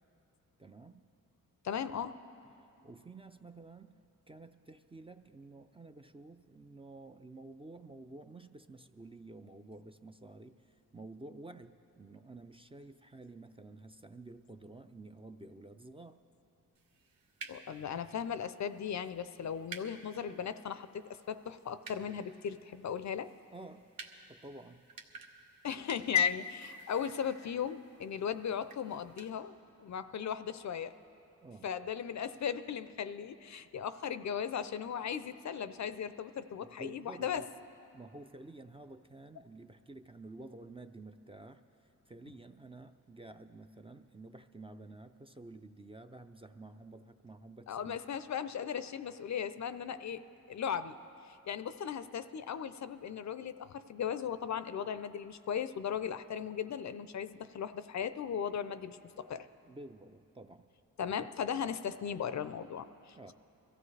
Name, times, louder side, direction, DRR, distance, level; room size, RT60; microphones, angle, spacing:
voice 1, 0.6-1.1 2.8-4.0 4.3-16.2 23.5-23.9 24.3-24.9 31.4-31.7 36.6-37.5 37.9-48.0 59.7-60.7 63.2-63.3, right 2 dB, 15° right, 8 dB, 0.4 m, -51 dB
voice 2, 1.6-2.2 17.5-23.3 25.6-30.9 31.6-37.4 47.7-50.2 50.5-51.0 51.2-59.5 61.0-63.3, left 8 dB, 55° left, 13 dB, 0.5 m, -37 dB
sound 1, 16.7-29.3, right 4 dB, 75° right, 1.1 m, -54 dB
22.5 x 14.5 x 3.3 m, 2.8 s
cardioid pair, 85°, 35 cm